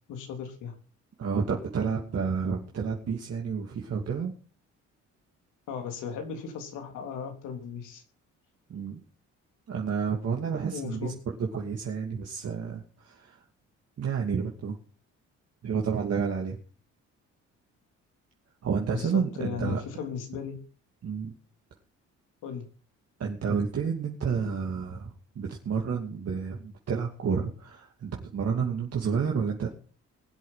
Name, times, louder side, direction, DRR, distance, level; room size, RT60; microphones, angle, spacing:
voice 1, 0.1-0.8 5.7-8.0 10.7-11.1 18.9-20.6 22.4-22.7, left 7 dB, 90° left, 4 dB, 3.4 m, -36 dB
voice 2, 1.2-4.3 8.7-9.0 9.7-11.1 11.4-13.4 14.0-14.8 15.6-16.6 18.6-19.8 21.0-21.3 23.2-29.7, right 6 dB, 55° right, 0 dB, 2.7 m, -30 dB
21.0 x 8.1 x 5.8 m, 0.41 s
cardioid pair, 90°, 30 cm